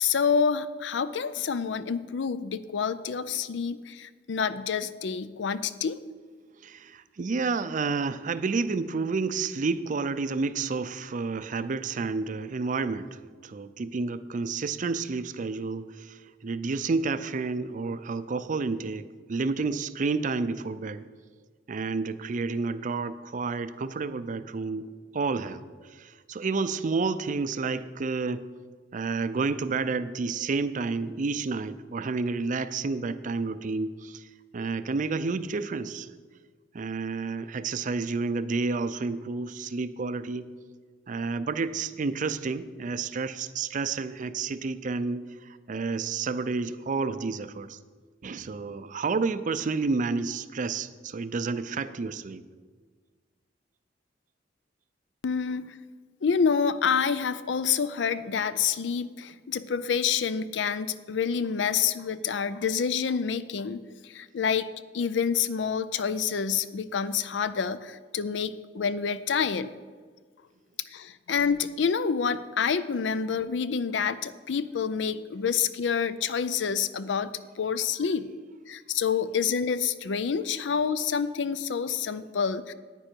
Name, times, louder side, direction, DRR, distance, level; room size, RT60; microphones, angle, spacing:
voice 1, 0.0-6.0 55.2-55.8 56.2-69.7 70.9-78.3 78.7-82.7, left 6 dB, 80° left, 14 dB, 0.5 m, -28 dB
voice 2, 6.6-21.1 21.7-28.4 28.9-34.3 34.5-36.1 36.7-40.5 41.1-47.8 48.2-52.4, right 4 dB, 45° right, 13 dB, 0.4 m, -30 dB
9.8 x 9.1 x 4.5 m, 1.5 s
head